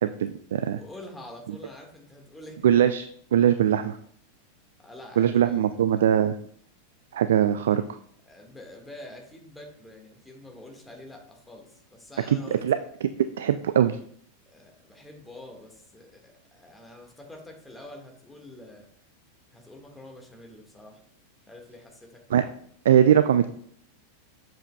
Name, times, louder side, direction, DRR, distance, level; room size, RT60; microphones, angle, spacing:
voice 1, 0.0-0.8 1.5-1.6 2.6-3.1 3.3-4.0 5.2-6.4 7.1-7.8 12.3-13.1 13.4-14.0 22.3-22.5 22.8-23.5, right 9 dB, 60° right, 11 dB, 0.3 m, -21 dB
voice 2, 0.7-2.7 4.8-5.7 8.2-12.6 14.4-18.9 19.5-21.0 21.5-22.2 22.5-22.6, left 1 dB, 5° left, 1 dB, 1.6 m, -46 dB
7.5 x 7.4 x 2.2 m, 0.64 s
figure-of-eight pair, 90°, 0 cm